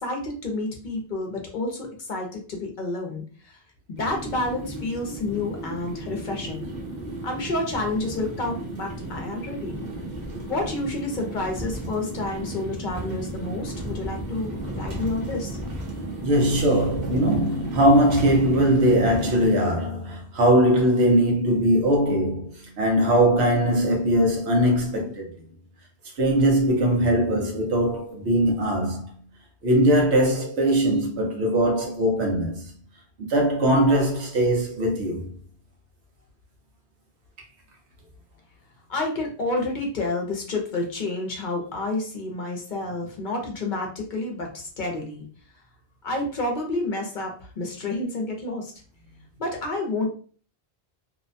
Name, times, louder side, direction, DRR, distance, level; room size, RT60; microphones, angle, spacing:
voice 1, 0.0-3.6 3.9-6.6 7.2-9.8 10.5-15.6 38.9-45.2 46.0-48.7 49.4-50.1, left 2 dB, 55° left, 0.7 m, -29 dB
sound 1, 4.0-19.5, right 1 dB, 45° right, 0.8 m, -34 dB
voice 2, 16.2-25.3 26.2-29.2 29.6-32.7 33.3-35.3, right 1 dB, 85° right, 1.1 m, -21 dB
2.7 x 2.1 x 2.5 m
omnidirectional pair, 1.1 m